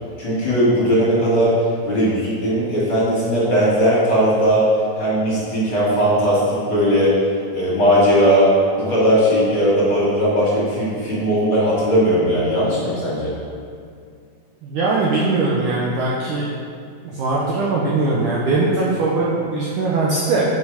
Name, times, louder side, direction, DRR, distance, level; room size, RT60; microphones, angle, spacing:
voice 1, 0.2-4.6 5.0-7.1 7.5-13.3, equal, 40° left, -9 dB, 2.6 m, -18 dB
voice 2, 14.6-16.5 17.0-20.4, right 3 dB, 85° right, -5 dB, 1.8 m, -20 dB
8.3 x 5.4 x 5.0 m, 2.2 s
omnidirectional pair, 4.6 m